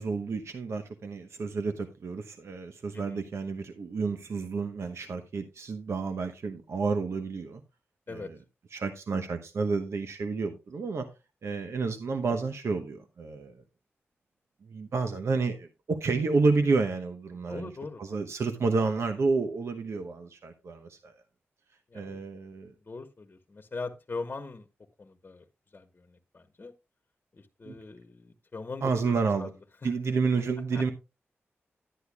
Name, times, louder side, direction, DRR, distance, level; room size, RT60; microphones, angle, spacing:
voice 1, 0.0-7.6 8.1-8.4 8.7-11.1 11.4-13.6 14.6-17.7 18.0-21.2 21.9-22.7 27.6-27.8 28.8-29.5 29.8-30.9, right 4 dB, 70° right, 0.9 m, -30 dB
voice 2, 17.5-18.0 21.9-22.2 22.9-24.6 25.0-25.4 25.7-26.7 27.3-29.5 29.8-29.9 30.7-30.8, left 3 dB, 40° left, 1.1 m, -41 dB
11.5 x 10.0 x 2.4 m
wide cardioid pair, 85°, 5 cm